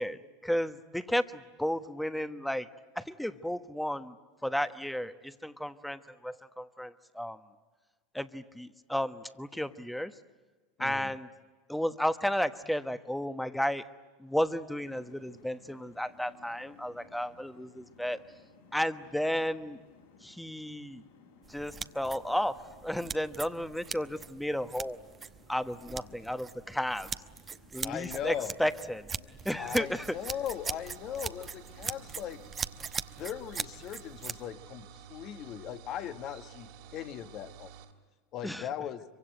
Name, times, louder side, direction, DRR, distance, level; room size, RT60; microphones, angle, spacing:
voice 1, 0.0-2.7 2.9-4.2 4.4-7.4 8.1-10.1 10.8-11.3 11.7-13.9 14.2-18.2 18.7-19.8 20.2-21.0 21.5-22.6 22.8-25.0 25.5-27.1 27.7-29.1 29.4-30.1 38.4-38.7, equal, ahead, 12 dB, 1.1 m, -33 dB
voice 2, 10.8-11.2 25.9-26.2 27.8-28.6 29.6-32.4 33.2-37.7 38.3-39.0, left 10 dB, 45° left, 10 dB, 1.3 m, -39 dB
sound 1, 14.8-32.5, left 5 dB, 70° left, 6.9 m, -60 dB
sound 2, 21.4-34.4, right 6 dB, 25° right, 0.9 m, -41 dB
sound 3, 29.6-37.9, right 8 dB, 60° right, 2.8 m, -51 dB
25.5 x 24.0 x 9.2 m, 1.4 s
figure-of-eight pair, 80°, 0 cm